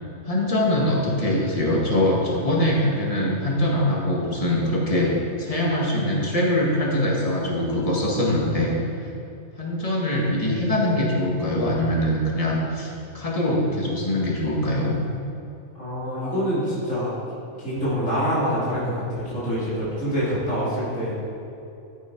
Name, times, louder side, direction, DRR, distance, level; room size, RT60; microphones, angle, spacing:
voice 1, 0.3-5.1 5.4-8.7 9.6-15.0 16.2-16.3, left 1 dB, 25° left, -3 dB, 2.0 m, -23 dB
voice 2, 15.7-17.1 17.6-21.2, equal, 70° left, -10 dB, 3.4 m, -26 dB
13.0 x 7.3 x 4.7 m, 2.8 s
omnidirectional pair, 1.4 m